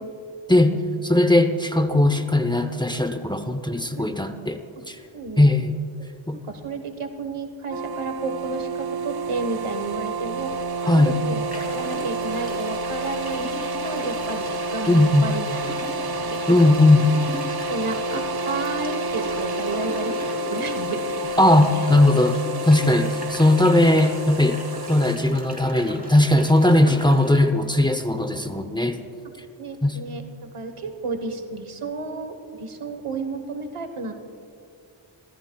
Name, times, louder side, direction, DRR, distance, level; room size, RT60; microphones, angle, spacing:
voice 1, 0.5-0.8 3.9-4.1 5.1-5.5 6.3-10.5 10.8-13.5 13.8-16.5 17.7-21.4 21.7-21.9 23.0-23.1 29.6-30.2 30.5-34.1, right 3 dB, 85° right, 6 dB, 1.3 m, -32 dB
voice 2, 1.0-4.6 4.9-5.0 5.4-5.7 6.3-6.4 10.9-11.2 14.9-15.3 16.5-17.1 21.4-24.6 24.9-29.0 29.8-30.0, left 1 dB, 10° left, 8 dB, 0.7 m, -18 dB
sound 1, 7.7-25.2, right 1 dB, 50° right, 0.7 m, -29 dB
sound 2, 10.8-10.9 11.5-27.4, right 1 dB, 15° right, 2.7 m, -39 dB
29.0 x 14.0 x 2.3 m, 2.5 s
wide cardioid pair, 55°, 49 cm